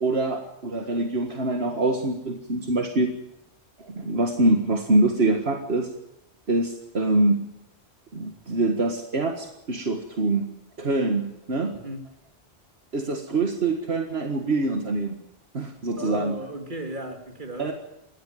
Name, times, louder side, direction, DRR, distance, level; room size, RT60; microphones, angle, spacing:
voice 1, 0.0-3.1 3.8-5.9 6.5-7.5 8.1-10.5 10.8-11.7 12.9-15.2 15.5-16.3 17.6-17.7, right 2 dB, 70° right, 4 dB, 2.0 m, -24 dB
voice 2, 16.0-17.7, right 1 dB, 50° right, 4 dB, 3.0 m, -35 dB
19.5 x 16.0 x 9.3 m, 0.84 s
omnidirectional pair, 1.1 m